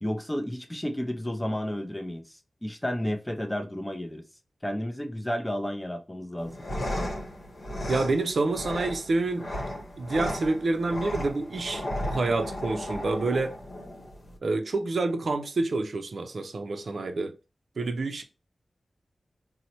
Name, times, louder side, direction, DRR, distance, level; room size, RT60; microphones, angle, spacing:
voice 1, 0.0-2.2 2.6-4.2 4.6-6.5, equal, 10° left, 0.5 m, -31 dB
sound 1, 6.4-14.4, left 1 dB, 60° left, 0.9 m, -35 dB
voice 2, 7.9-9.6 10.0-13.6 14.4-17.4 17.8-18.2, right 3 dB, 65° right, 0.4 m, -28 dB
4.1 x 2.0 x 2.8 m
wide cardioid pair, 110°, 0 cm